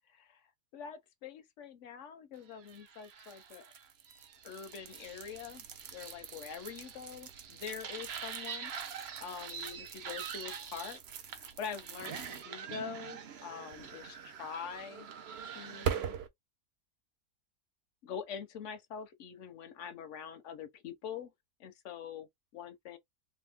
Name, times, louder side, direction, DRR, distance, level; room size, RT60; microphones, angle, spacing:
voice 1, 0.1-0.4 0.7-3.7 4.4-5.6 5.9-11.0 11.3-15.1 15.4-16.2 18.0-21.3 21.6-23.0, left 7 dB, 65° left, 0.8 m, -45 dB
sound 1, 2.6-16.3, right 8 dB, 60° right, 0.7 m, -42 dB
2.7 x 2.2 x 3.3 m
omnidirectional pair, 1.5 m